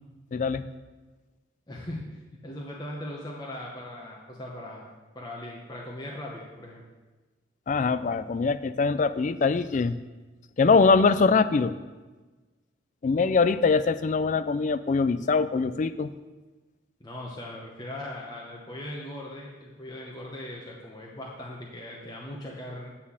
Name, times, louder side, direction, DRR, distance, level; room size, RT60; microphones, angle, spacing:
voice 1, 0.3-0.6 7.7-9.9 10.6-11.7 13.0-16.1, left 4 dB, 40° left, 14 dB, 0.3 m, -23 dB
voice 2, 1.7-6.8 17.0-22.9, left 1 dB, 20° left, -3 dB, 0.9 m, -39 dB
9.3 x 4.3 x 7.1 m, 1.3 s
head